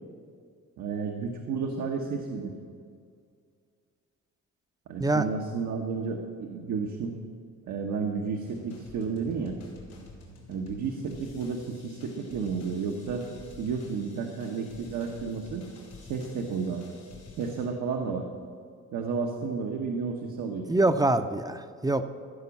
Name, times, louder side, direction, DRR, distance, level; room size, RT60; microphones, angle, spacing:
voice 1, 0.8-2.5 4.9-7.2 7.7-9.5 10.5-13.2 13.6-15.6 16.1-16.8 17.4-18.3 18.9-20.7, right 5 dB, 80° right, 1 dB, 1.1 m, -32 dB
sound 1, 8.4-17.7, left 3 dB, 90° left, 3.4 m, -49 dB
voice 2, 20.7-22.1, right 2 dB, 10° right, 10 dB, 0.5 m, -24 dB
15.0 x 5.2 x 7.1 m, 2.2 s
cardioid pair, 90°, 30 cm